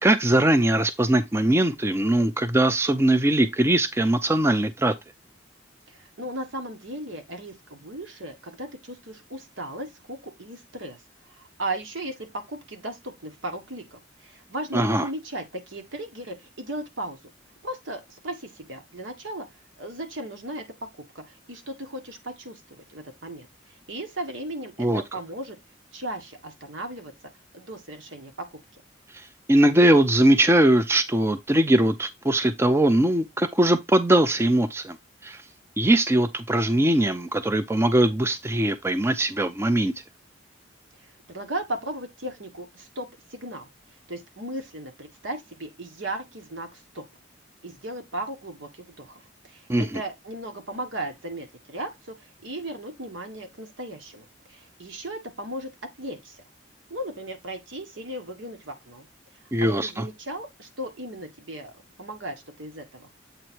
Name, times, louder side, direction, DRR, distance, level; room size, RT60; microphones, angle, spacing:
voice 1, 0.0-4.9 14.7-15.0 24.8-25.0 29.5-35.0 35.2-35.4 35.8-39.9 49.7-50.0 59.5-60.0, right 1 dB, 15° right, 0.4 m, -21 dB
voice 2, 5.9-11.0 11.3-17.2 17.6-19.5 19.8-20.6 21.1-23.5 23.9-25.6 25.9-27.1 27.5-28.3 41.3-43.7 44.1-47.0 47.6-55.7 56.0-56.4 56.9-59.1 59.6-61.7 62.0-63.1, right 1 dB, 80° right, 1.5 m, -36 dB
7.8 x 3.1 x 4.4 m
head